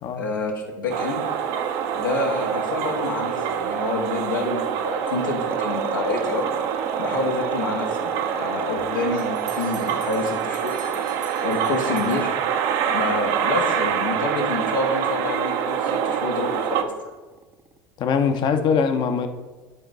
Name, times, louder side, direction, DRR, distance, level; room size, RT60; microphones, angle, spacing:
voice 1, 0.1-1.2 1.9-6.5 7.0-10.8 11.4-12.3 12.9-16.9, left 3 dB, 85° left, 0 dB, 1.5 m, -28 dB
sound 1, 0.9-16.8, right 8 dB, 60° right, 0.7 m, -26 dB
sound 2, 5.5-17.8, right 4 dB, 25° right, 0.6 m, -36 dB
Bell, 9.2-12.8, right 7 dB, 80° right, 1.3 m, -44 dB
voice 2, 18.0-19.3, left 6 dB, 45° left, 7 dB, 0.9 m, -22 dB
11.5 x 3.8 x 3.9 m, 1.3 s
hypercardioid pair, 75°, 10 cm